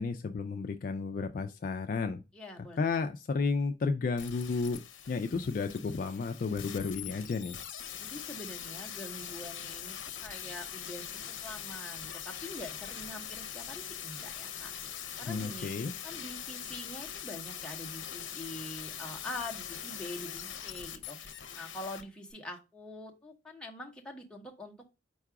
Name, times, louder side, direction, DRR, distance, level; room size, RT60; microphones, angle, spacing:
voice 1, 0.0-2.2 2.8-4.8 5.1-7.6 15.3-15.9, left 4 dB, 45° left, 0.3 m, -32 dB
voice 2, 2.3-2.8 8.0-10.0 10.2-25.0, left 1 dB, 5° left, 0.8 m, -45 dB
sound 1, 4.2-22.0 22.3-22.4, left 9 dB, 80° left, 0.6 m, -42 dB
4.7 x 2.3 x 4.6 m
head